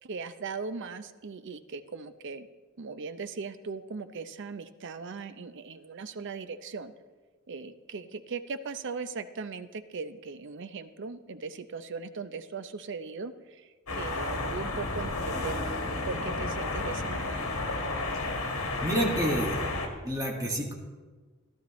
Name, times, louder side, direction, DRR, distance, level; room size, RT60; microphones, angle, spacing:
voice 1, 0.0-2.5 2.8-6.9 7.5-15.6 16.0-17.4, right 4 dB, 60° right, 12 dB, 0.6 m, -39 dB
sound 1, 13.9-19.9, left 2 dB, 80° left, 1.7 m, -32 dB
voice 2, 18.8-19.6 20.0-20.7, right 1 dB, 20° right, -1 dB, 1.9 m, -29 dB
15.0 x 12.0 x 3.1 m, 1.3 s
head